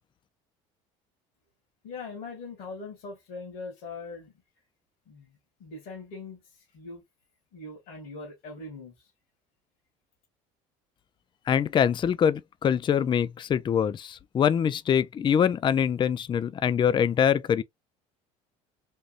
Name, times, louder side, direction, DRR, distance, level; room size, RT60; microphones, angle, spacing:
voice 1, 1.8-4.3 5.1-7.0 7.5-9.1, left 3 dB, 65° left, 1.8 m, -41 dB
voice 2, 11.5-17.6, left 8 dB, 30° left, 0.4 m, -24 dB
3.6 x 2.6 x 2.4 m
supercardioid pair, 85°, 16 cm